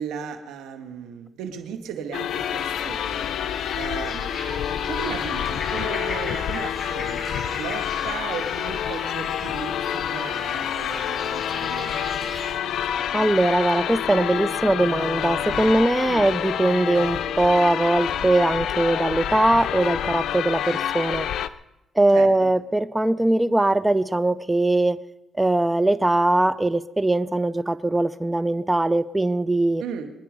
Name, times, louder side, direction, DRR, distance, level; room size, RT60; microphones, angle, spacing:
voice 1, 0.0-4.4 4.9-7.2 7.4-12.3 16.1-16.3 22.1-22.5 29.8-30.1, right 7 dB, 90° right, 6 dB, 2.0 m, -36 dB
sound 1, 2.1-21.5, left 10 dB, 75° left, 0.6 m, -28 dB
sound 2, 2.3-12.5, left 2 dB, 25° left, 7.7 m, -37 dB
voice 2, 13.1-21.3 22.0-25.0 25.4-29.8, right 2 dB, 10° right, 16 dB, 0.5 m, -21 dB
23.5 x 10.5 x 5.3 m, 0.94 s
cardioid pair, 90°, 0 cm